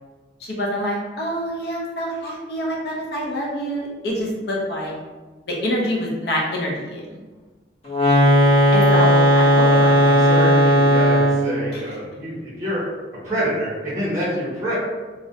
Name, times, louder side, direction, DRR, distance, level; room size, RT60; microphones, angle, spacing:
voice 1, 0.4-4.9 5.5-7.2 8.7-10.4 11.7-11.8, equal, 65° left, -3 dB, 0.6 m, -26 dB
sound 1, 7.9-11.5, equal, 35° left, 0.8 m, -15 dB
voice 2, 9.7-12.9 13.1-14.7, equal, 15° right, -8 dB, 0.6 m, -27 dB
2.4 x 2.0 x 2.7 m, 1.3 s
head